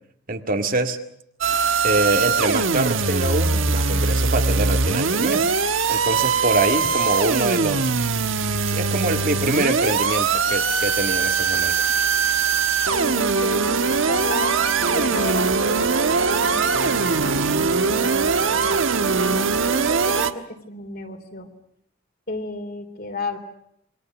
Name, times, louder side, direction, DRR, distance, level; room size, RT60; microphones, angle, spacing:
voice 1, 0.3-1.0 1.8-5.5 5.9-7.9 8.7-11.7, right 2 dB, 45° right, 5 dB, 2.0 m, -24 dB
sound 1, 1.4-20.3, right 5 dB, 75° right, 1.4 m, -21 dB
voice 2, 12.9-21.5 22.3-23.4, left 2 dB, 50° left, 5 dB, 3.5 m, -33 dB
28.0 x 24.0 x 6.2 m, 0.73 s
head